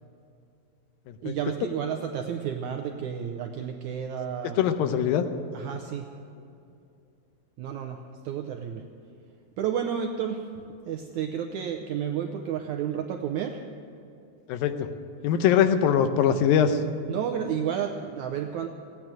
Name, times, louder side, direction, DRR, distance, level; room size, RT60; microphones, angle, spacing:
voice 1, 1.2-4.9 5.5-6.1 7.6-8.8 9.6-10.5 10.8-13.6 17.1-18.7, right 8 dB, 80° right, 4 dB, 1.7 m, -31 dB
voice 2, 4.6-5.2 14.5-14.9 15.2-16.8, left 8 dB, 80° left, 9 dB, 2.5 m, -22 dB
16.5 x 9.4 x 9.0 m, 2.5 s
omnidirectional pair, 4.2 m